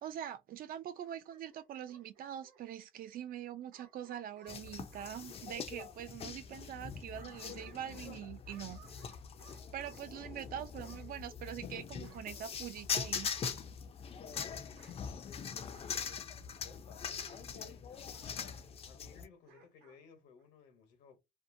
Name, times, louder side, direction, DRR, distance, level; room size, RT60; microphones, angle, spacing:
voice 1, 0.0-8.8 9.7-13.3, right 10 dB, 60° right, 0.5 m, -44 dB
Bark / Growling, 1.0-2.6 3.7-5.2 6.8-8.2 8.5-10.0 10.8-11.1 12.0-12.8 13.2-13.6 14.7-15.0 15.7-16.0 17.2-17.5 18.1-18.3 19.4-20.0 20.4-20.5, right 6 dB, 80° right, 0.9 m, -62 dB
sound 1, 4.5-19.3, left 6 dB, 35° left, 0.4 m, -42 dB
voice 2, 15.2-21.2, left 6 dB, 85° left, 1.1 m, -60 dB
2.7 x 2.1 x 2.6 m
cardioid pair, 110°, 17 cm